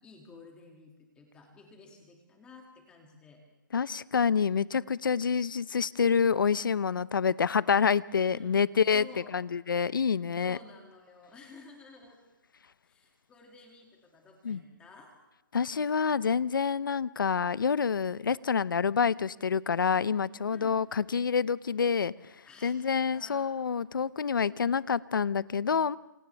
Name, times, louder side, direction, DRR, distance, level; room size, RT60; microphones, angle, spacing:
voice 1, 0.0-3.4 8.2-8.6 8.9-9.3 10.4-12.2 12.8-15.1 20.5-20.8 22.4-22.7 23.1-23.7, left 4 dB, 10° left, 1 dB, 2.4 m, -53 dB
voice 2, 3.7-9.0 9.3-10.6 14.4-14.6 15.5-22.1 22.6-26.0, left 6 dB, 85° left, 18 dB, 0.7 m, -27 dB
30.0 x 27.5 x 3.4 m, 0.93 s
hypercardioid pair, 165°, 11 cm